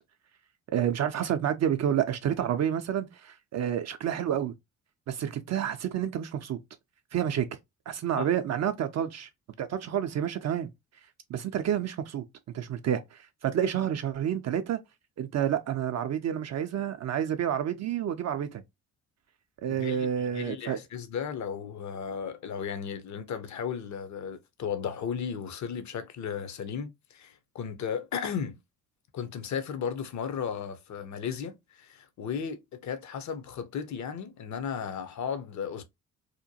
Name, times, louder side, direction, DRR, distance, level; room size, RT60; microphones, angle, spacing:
voice 1, 0.7-4.5 5.1-6.6 7.1-7.5 7.9-9.3 9.6-10.7 11.3-12.2 12.5-14.8 15.2-18.6 19.6-20.8, right 9 dB, 45° right, 0.4 m, -29 dB
voice 2, 19.7-20.1 20.3-28.6 29.1-35.8, left 7 dB, 45° left, 0.7 m, -35 dB
2.8 x 2.1 x 2.6 m
hypercardioid pair, 50°, 39 cm